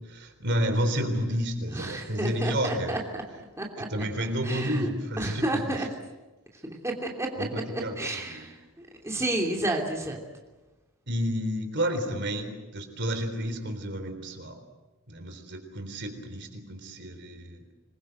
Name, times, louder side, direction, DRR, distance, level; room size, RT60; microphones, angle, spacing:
voice 1, 0.1-3.0 3.9-5.8 7.4-8.5 11.1-14.6 15.1-17.6, equal, 55° right, 7 dB, 3.8 m, -31 dB
voice 2, 1.7-3.2 3.6-3.9 4.4-4.9 5.2-5.9 6.8-7.3 7.7-8.5 9.0-10.2, right 1 dB, 15° right, 0 dB, 3.0 m, -30 dB
26.5 x 22.0 x 7.9 m, 1.1 s
head